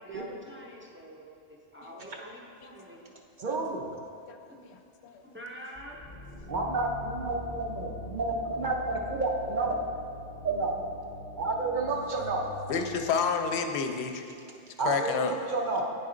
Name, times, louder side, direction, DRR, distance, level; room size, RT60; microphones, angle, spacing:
voice 1, 0.0-3.1 4.5-4.6 5.2-6.0 11.6-11.7, equal, 15° right, -3 dB, 0.5 m, -46 dB
voice 2, 3.4-3.9 6.5-9.9 10.4-10.9 11.4-12.4 14.8-15.8, right 3 dB, 55° right, 0 dB, 0.7 m, -30 dB
sound 1, 5.7-13.6, left 1 dB, 45° left, 0.7 m, -44 dB
voice 3, 12.7-14.3 14.8-15.3, left 5 dB, 75° left, 5 dB, 0.8 m, -29 dB
9.3 x 4.1 x 3.8 m, 2.4 s
omnidirectional pair, 1.1 m